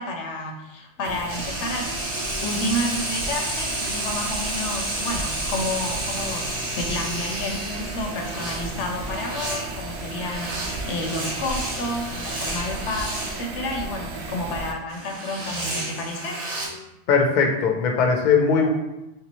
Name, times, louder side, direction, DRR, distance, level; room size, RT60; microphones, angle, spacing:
voice 1, 0.0-2.1 2.4-6.5 6.8-16.4, left 1 dB, 85° left, 3 dB, 0.9 m, -30 dB
sound 1, 1.0-14.7, right 2 dB, 70° right, 0.8 m, -34 dB
sound 2, 1.3-13.4 14.9-16.7, right 2 dB, 85° right, 1.2 m, -31 dB
voice 2, 17.1-18.7, left 5 dB, 55° left, 2 dB, 0.5 m, -19 dB
3.3 x 2.8 x 2.9 m, 0.95 s
omnidirectional pair, 1.2 m